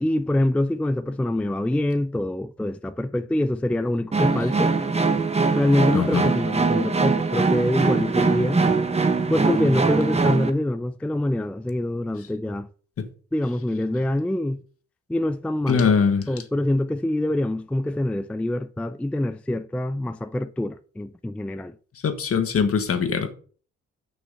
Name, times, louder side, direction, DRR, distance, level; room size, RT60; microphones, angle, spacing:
voice 1, 0.0-4.7 5.5-8.6 9.3-12.7 13.3-14.6 15.1-15.9 16.3-21.7, left 1 dB, 5° left, 0.4 m, -25 dB
sound 1, 4.1-10.5, right 4 dB, 20° right, 1.2 m, -22 dB
voice 2, 5.9-6.3 13.0-13.1 15.7-16.3 22.0-23.3, left 6 dB, 50° left, 1.5 m, -22 dB
6.3 x 6.2 x 5.5 m
cardioid pair, 90°, 30 cm